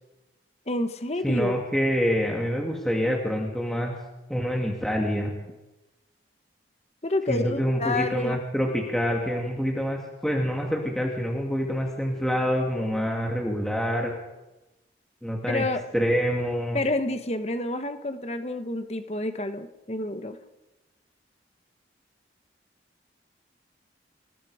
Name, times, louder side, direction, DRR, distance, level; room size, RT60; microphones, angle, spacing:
voice 1, 0.7-1.5 7.0-8.4 15.5-15.8 16.7-20.4, left 2 dB, 35° left, 8 dB, 1.3 m, -29 dB
voice 2, 1.2-3.9 4.3-5.3 7.3-14.1 15.2-15.6 15.9-16.8, equal, ahead, -1 dB, 2.5 m, -26 dB
28.0 x 19.5 x 5.1 m, 1.0 s
head